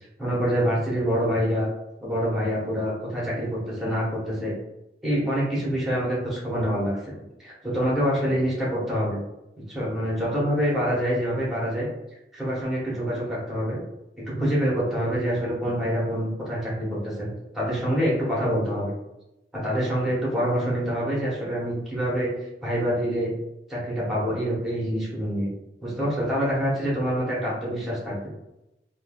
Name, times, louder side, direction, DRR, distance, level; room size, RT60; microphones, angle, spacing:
voice 1, 0.2-1.7 2.0-4.6 5.0-9.2 9.7-11.9 12.3-13.8 14.2-18.9 19.6-22.3 22.6-23.3 23.7-25.5 25.8-28.2, equal, ahead, -7 dB, 0.9 m, -26 dB
3.2 x 2.3 x 2.3 m, 0.91 s
head